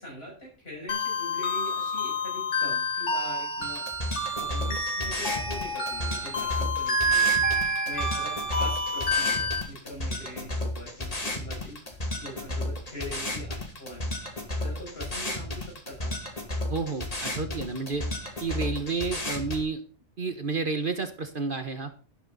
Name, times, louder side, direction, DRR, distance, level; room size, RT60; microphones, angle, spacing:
voice 1, 0.0-3.8 4.3-7.3 7.8-14.1 14.6-16.2, equal, 55° left, -2 dB, 7.8 m, -42 dB
sound 1, 0.9-9.6, equal, 70° left, 2.6 m, -28 dB
sound 2, 3.6-19.6, left 1 dB, 30° left, 2.6 m, -33 dB
voice 2, 16.7-18.1 18.4-19.8 20.2-21.9, right 4 dB, 45° right, 8 dB, 1.4 m, -30 dB
12.5 x 12.0 x 4.1 m, 0.34 s
omnidirectional pair, 1.2 m